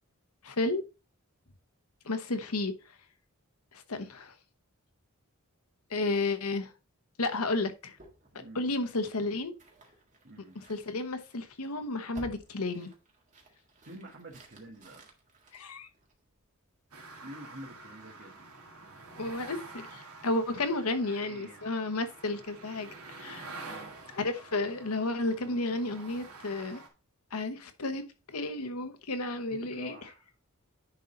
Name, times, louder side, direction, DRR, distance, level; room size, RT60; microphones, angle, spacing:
voice 1, 0.4-0.8 2.0-2.7 3.7-4.3 5.9-6.7 7.2-8.0 8.5-9.5 10.7-12.9 15.5-15.9 19.2-23.5 24.1-26.8 27.3-28.0 28.3-29.9, left 2 dB, 80° left, 1.1 m, -32 dB
sound 1, 8.0-16.4, right 1 dB, 35° right, 1.8 m, -55 dB
voice 2, 8.3-8.7 10.2-10.6 13.9-15.1 17.2-18.6 21.0-21.7 23.6-23.9 29.5-30.4, right 1 dB, 50° right, 1.6 m, -49 dB
sound 2, 16.9-26.9, right 3 dB, 80° right, 2.2 m, -48 dB
10.0 x 3.9 x 4.0 m
head